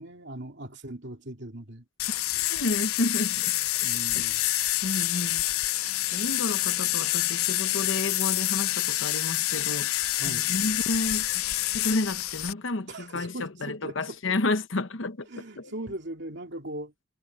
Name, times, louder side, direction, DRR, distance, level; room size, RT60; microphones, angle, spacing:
voice 1, 0.0-1.8 3.8-4.4 10.2-10.5 12.9-14.4 15.3-17.0, right 1 dB, 55° right, 2.7 m, -39 dB
sound 1, 2.0-12.5, left 16 dB, 85° left, 0.6 m, -27 dB
voice 2, 2.4-3.5 4.1-4.2 4.8-5.4 6.1-11.4 11.7-15.3 15.6-15.7, left 2 dB, 65° left, 1.1 m, -31 dB
head